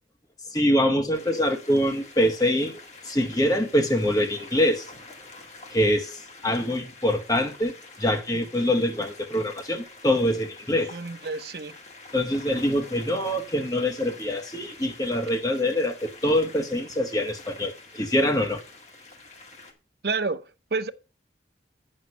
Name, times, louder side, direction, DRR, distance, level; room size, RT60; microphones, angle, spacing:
voice 1, 0.5-4.9 5.7-7.7 8.0-10.9 12.1-18.6, left 1 dB, 20° left, 1.2 m, -24 dB
sound 1, 1.1-19.7, left 3 dB, 40° left, 1.9 m, -47 dB
voice 2, 10.7-11.8 20.0-20.9, right 4 dB, 60° right, 0.8 m, -30 dB
9.1 x 6.5 x 5.5 m
head